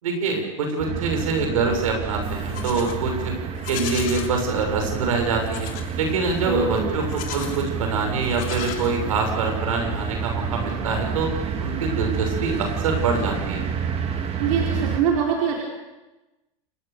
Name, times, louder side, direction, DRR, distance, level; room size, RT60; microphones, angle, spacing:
voice 1, 0.0-3.3 3.7-5.7 6.0-11.3 11.6-13.6, right 4 dB, 90° right, 4 dB, 6.8 m, -25 dB
sound 1, 0.8-15.0, right 6 dB, 35° right, 3.3 m, -29 dB
Livestock farm animals working animals, 2.2-3.0 3.5-4.3 5.4-5.9 7.0-7.7 8.2-9.3, left 11 dB, 55° left, 3.5 m, -36 dB
voice 2, 6.4-7.0 14.4-15.6, right 6 dB, 75° right, -1 dB, 4.8 m, -23 dB
29.0 x 20.5 x 7.0 m, 1.1 s
supercardioid pair, 115°, 17 cm